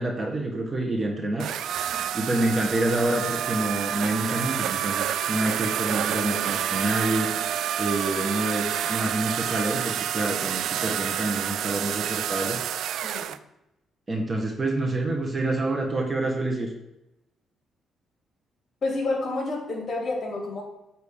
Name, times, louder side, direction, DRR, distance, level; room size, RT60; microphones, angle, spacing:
voice 1, 0.0-1.5 2.1-7.3 7.8-12.6 14.1-16.7, right 2 dB, 30° right, 0 dB, 1.4 m, -27 dB
sound 1, 1.4-13.4, right 10 dB, 75° right, 0.3 m, -28 dB
voice 2, 13.0-13.3 18.8-20.6, left 2 dB, 45° left, -2 dB, 2.9 m, -29 dB
8.7 x 3.2 x 6.6 m, 0.91 s
cardioid pair, 90°, 0 cm